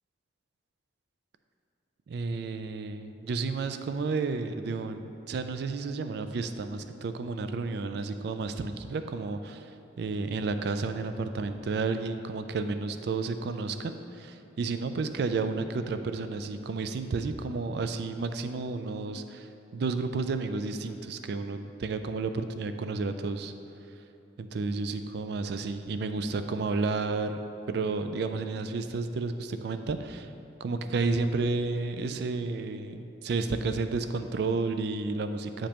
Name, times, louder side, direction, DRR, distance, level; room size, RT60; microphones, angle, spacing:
voice 1, 2.1-9.7 10.0-23.5 24.4-27.4 27.7-30.3 30.6-35.7, right 3 dB, 55° right, 8 dB, 0.3 m, -31 dB
8.4 x 5.1 x 2.9 m, 2.7 s
head